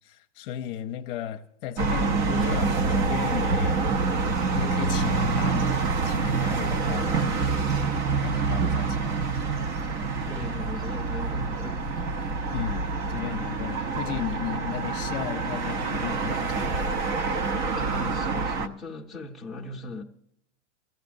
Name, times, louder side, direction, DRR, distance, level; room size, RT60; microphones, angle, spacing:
voice 1, 0.0-3.8 4.5-5.7 6.0-7.7 8.2-9.2 12.5-17.0, left 11 dB, 50° left, 0.7 m, -35 dB
sound 1, 1.8-18.7, right 4 dB, 30° right, 0.6 m, -26 dB
voice 2, 10.2-11.9 17.7-20.0, left 2 dB, ahead, 0.9 m, -38 dB
22.0 x 15.0 x 2.6 m
supercardioid pair, 140°, 37 cm